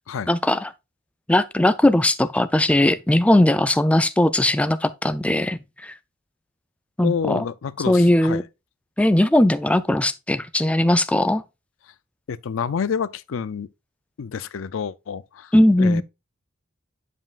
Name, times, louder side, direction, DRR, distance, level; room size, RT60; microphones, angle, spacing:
voice 1, 0.3-0.7 1.3-5.9 7.0-7.4 7.9-8.4 9.0-11.4 15.5-16.0, left 1 dB, 5° left, 0.4 m, -19 dB
voice 2, 7.0-8.4 12.3-13.7 14.2-16.0, left 6 dB, 75° left, 0.4 m, -28 dB
9.5 x 5.4 x 2.4 m
head